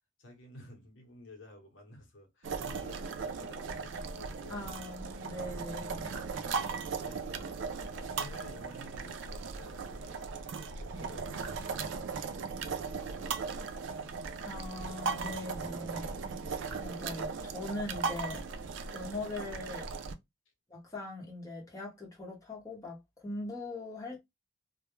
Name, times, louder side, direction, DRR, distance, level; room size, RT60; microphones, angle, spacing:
voice 1, 0.2-4.7 5.3-5.4 5.8-7.5 7.9-13.7, left 2 dB, 80° left, 0.8 m, -54 dB
sound 1, 2.4-20.1, right 5 dB, 70° right, 0.4 m, -38 dB
voice 2, 4.5-6.0 14.4-16.1 16.4-18.4 18.9-19.8 20.7-24.2, left 2 dB, 15° left, 0.8 m, -41 dB
2.2 x 2.0 x 2.9 m
head